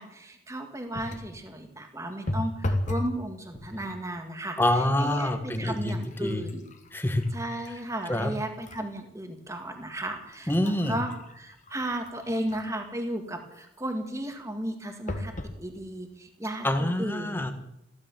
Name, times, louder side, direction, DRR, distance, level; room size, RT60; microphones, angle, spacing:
voice 1, 0.0-4.6 5.0-6.6 7.3-15.3 15.6-17.4, right 1 dB, 15° right, 5 dB, 1.9 m, -34 dB
sound 1, 0.9-1.4 2.3-3.2 3.5-4.0 4.8-4.9 5.3-8.9 9.4-9.5 10.1-12.9 15.1-15.6 16.3-16.4 16.6-16.7, left 1 dB, 40° left, 1.6 m, -36 dB
voice 2, 4.6-5.9 6.2-6.4 6.9-7.2 8.1-8.3 10.5-11.0 16.6-17.5, left 1 dB, 10° left, 7 dB, 1.4 m, -26 dB
15.5 x 13.0 x 7.2 m, 0.82 s
head